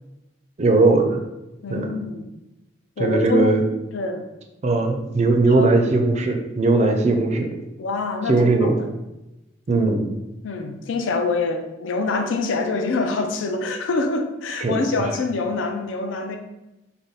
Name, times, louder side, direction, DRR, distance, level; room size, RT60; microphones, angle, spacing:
voice 1, 0.6-1.2 1.7-1.9 3.0-3.6 4.6-7.5 8.3-8.7 9.7-10.0 14.6-15.1, right 3 dB, 35° right, 4 dB, 0.4 m, -19 dB
voice 2, 1.6-2.3 3.0-3.6 3.9-4.2 5.6-5.7 7.8-8.7 10.4-16.4, left 3 dB, 80° left, 5 dB, 0.4 m, -25 dB
3.4 x 2.2 x 3.8 m, 0.98 s
head